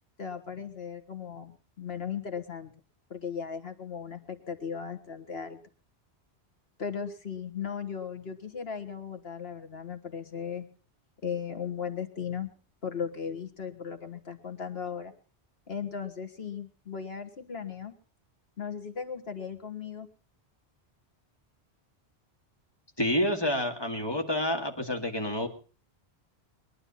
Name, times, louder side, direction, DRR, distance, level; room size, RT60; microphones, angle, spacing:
voice 1, 0.2-2.7 3.1-5.6 6.8-10.7 11.2-12.5 12.8-15.1 15.7-17.9 18.6-20.1, left 7 dB, 70° left, 8 dB, 1.9 m, -37 dB
voice 2, 23.0-25.5, left 1 dB, 25° left, 2 dB, 2.4 m, -28 dB
21.5 x 11.0 x 5.7 m, 0.39 s
omnidirectional pair, 1.1 m